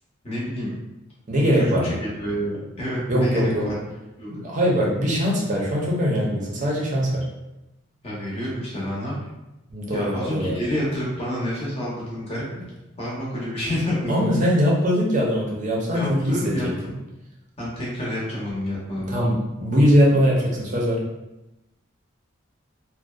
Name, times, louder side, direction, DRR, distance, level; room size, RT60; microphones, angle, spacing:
voice 1, 0.2-0.7 1.6-3.7 4.2-4.4 8.0-9.2 9.9-12.5 13.0-14.3 15.9-16.7 17.6-19.2, equal, 30° left, -6 dB, 0.7 m, -28 dB
voice 2, 1.3-1.9 3.1-3.6 4.4-7.3 9.7-10.6 14.1-16.5 19.1-21.0, equal, 40° right, -3 dB, 0.5 m, -21 dB
2.5 x 2.1 x 2.3 m, 0.97 s
head